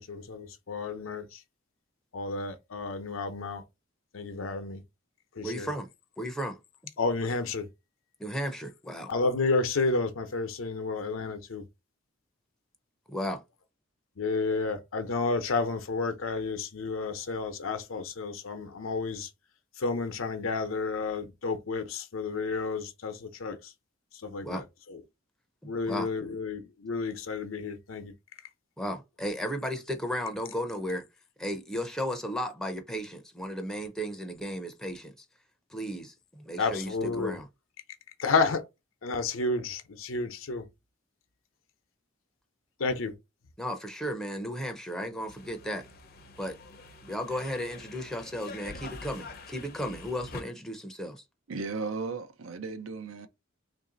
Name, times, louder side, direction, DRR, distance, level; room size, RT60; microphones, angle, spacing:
voice 1, 0.0-1.4 2.1-3.6 4.1-4.8 5.4-5.7 7.0-7.7 9.1-11.6 14.2-19.3 19.8-23.7 24.2-25.0 25.6-28.1 36.6-37.4 38.2-38.6 39.0-40.7 42.8-43.1, left 3 dB, 85° left, 0.7 m, -31 dB
voice 2, 5.4-5.9 6.2-6.6 8.2-9.1 13.1-13.4 24.4-24.6 25.6-26.1 28.8-31.0 31.4-35.1 35.7-37.4 43.6-45.9 46.4-46.6 47.0-51.2, equal, 5° left, 0.5 m, -34 dB
sound 1, 45.3-50.4, left 3 dB, 50° left, 0.6 m, -46 dB
voice 3, 51.5-53.3, right 4 dB, 85° right, 0.6 m, -35 dB
3.1 x 2.6 x 3.8 m
head